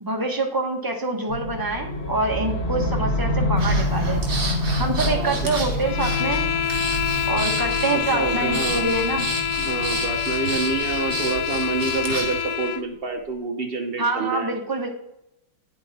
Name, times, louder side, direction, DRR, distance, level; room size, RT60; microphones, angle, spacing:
voice 1, 0.0-4.2 4.8-6.5 7.2-9.3 14.0-14.9, right 2 dB, 15° right, 1 dB, 1.1 m, -26 dB
sound 1, 1.3-11.4, left 1 dB, 30° left, 1.8 m, -27 dB
Breathing, 3.6-12.4, right 2 dB, 50° right, 2.4 m, -32 dB
voice 2, 5.0-5.5 8.1-8.9 9.6-14.5, right 4 dB, 80° right, 4 dB, 0.5 m, -27 dB
sound 2, 5.8-12.9, left 9 dB, 85° left, 0.8 m, -26 dB
10.0 x 7.6 x 4.2 m, 0.83 s
omnidirectional pair, 2.3 m